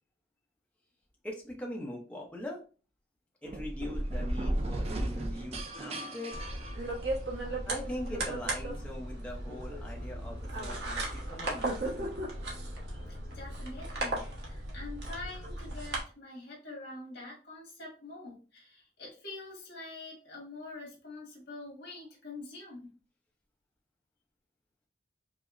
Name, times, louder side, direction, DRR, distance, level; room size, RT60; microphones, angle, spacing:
voice 1, 1.2-2.6 3.4-6.4 7.7-12.1, left 1 dB, 5° left, -1 dB, 0.6 m, -42 dB
sound 1, 3.4-7.4, right 1 dB, 35° right, 0.4 m, -35 dB
sound 2, 6.3-16.0, right 1 dB, 70° right, 1.0 m, -36 dB
voice 2, 13.1-22.9, left 2 dB, 80° left, -2 dB, 1.5 m, -45 dB
4.9 x 2.0 x 2.5 m, 0.37 s
head